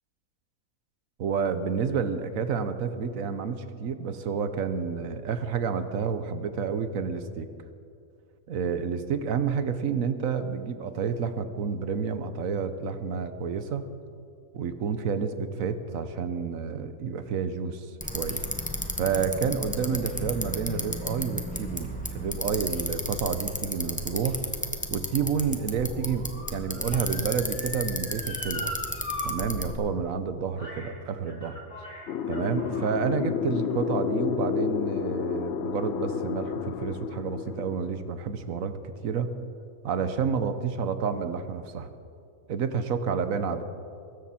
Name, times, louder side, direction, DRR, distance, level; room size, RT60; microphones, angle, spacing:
voice 1, 1.2-7.5 8.5-13.9 14.5-18.4 19.0-24.4 24.9-28.7 29.2-31.6 32.3-39.3 39.8-41.9 42.5-43.6, right 6 dB, 65° right, 10 dB, 1.3 m, -29 dB
Bicycle, 18.0-29.7, equal, 5° left, 0.9 m, -34 dB
Motor vehicle (road) / Siren, 24.1-29.3 29.6-29.7 30.6-30.9 31.3-32.9 33.6-33.7, left 1 dB, 30° left, 3.2 m, -40 dB
sound 1, 32.1-38.3, left 8 dB, 65° left, 0.6 m, -31 dB
23.0 x 13.0 x 4.3 m, 2.4 s
omnidirectional pair, 1.6 m